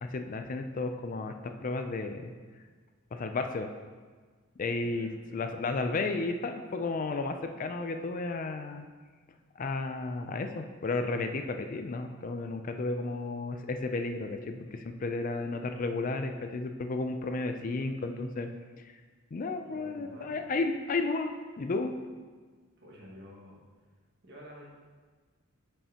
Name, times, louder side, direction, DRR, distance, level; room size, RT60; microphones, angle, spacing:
voice 1, 0.0-2.3 3.1-3.7 4.6-8.9 9.6-18.5 18.8-18.9 19.3-21.9, left 3 dB, 40° left, 6 dB, 0.4 m, -33 dB
voice 2, 4.8-5.1 19.6-20.5 22.8-23.6 24.2-24.7, equal, 55° right, -5 dB, 1.9 m, -50 dB
9.3 x 5.5 x 2.9 m, 1.5 s
head